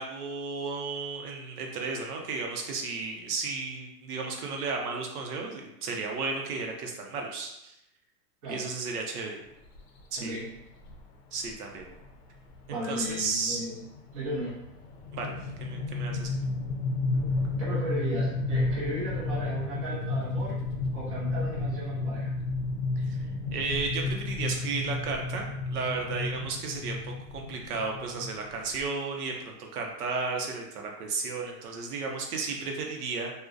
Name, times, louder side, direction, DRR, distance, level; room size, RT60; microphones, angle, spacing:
voice 1, 0.0-7.7 8.5-9.4 10.1-10.4 11.3-11.9 12.9-13.6 15.1-15.3 15.6-16.3 23.0-23.2 23.5-33.3, right 4 dB, 65° right, 1 dB, 0.6 m, -33 dB
sound 1, 9.7-10.0 10.9-11.0 11.4-11.5 11.8-12.1 12.5-28.8, left 2 dB, 75° left, 0.6 m, -32 dB
voice 2, 10.2-10.5 12.7-13.8 14.1-14.6 17.6-20.6 20.9-22.3, right 1 dB, 20° right, -8 dB, 0.5 m, -35 dB
2.3 x 2.1 x 2.4 m, 0.83 s
hypercardioid pair, 160°, 49 cm